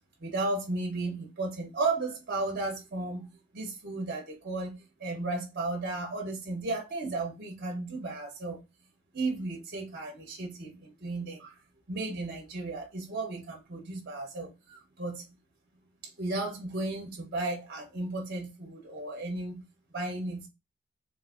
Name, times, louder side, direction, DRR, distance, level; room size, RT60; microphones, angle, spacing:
voice 1, 0.2-3.3 3.5-8.6 9.1-11.6 11.9-15.3 16.0-19.6 19.9-20.5, right 2 dB, 45° right, 0.9 m, -34 dB
3.8 x 2.6 x 2.4 m
head